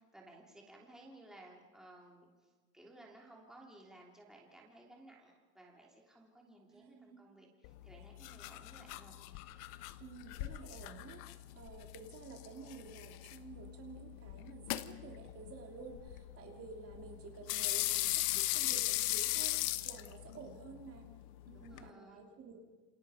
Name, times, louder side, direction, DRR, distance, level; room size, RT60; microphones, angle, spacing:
voice 1, 0.0-9.2 21.5-22.3, right 1 dB, ahead, -2 dB, 3.2 m, -58 dB
voice 2, 6.7-7.2 10.0-21.1 21.4-22.6, right 5 dB, 30° right, 1 dB, 3.1 m, -51 dB
sound 1, 7.6-21.9, left 17 dB, 75° left, 1.2 m, -39 dB
28.5 x 27.5 x 5.1 m, 1.3 s
cardioid pair, 165°, 46 cm